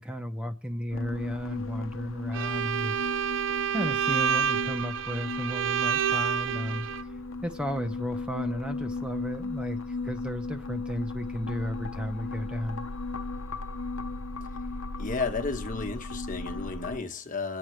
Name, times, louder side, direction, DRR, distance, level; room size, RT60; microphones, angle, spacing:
voice 1, 0.0-3.0 3.7-6.9 7.4-12.8, equal, 5° right, 0.9 m, -34 dB
sound 1, 0.9-17.0, left 3 dB, 85° left, 1.0 m, -36 dB
Bowed string instrument, 2.3-7.0, right 8 dB, 65° right, 0.6 m, -28 dB
voice 2, 15.0-17.6, left 4 dB, 40° left, 1.3 m, -33 dB
27.0 x 9.1 x 3.3 m
head